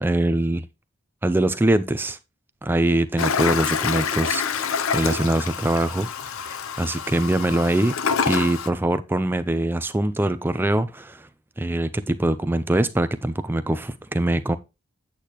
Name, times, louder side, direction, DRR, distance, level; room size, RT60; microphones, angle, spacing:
voice 1, 0.0-0.6 1.2-2.2 2.6-6.1 6.4-7.9 8.3-11.3 11.6-14.6, right 1 dB, 10° right, 0.3 m, -23 dB
Toilet flush, 3.2-8.7, left 6 dB, 70° left, 0.6 m, -26 dB
8.4 x 8.3 x 3.0 m
head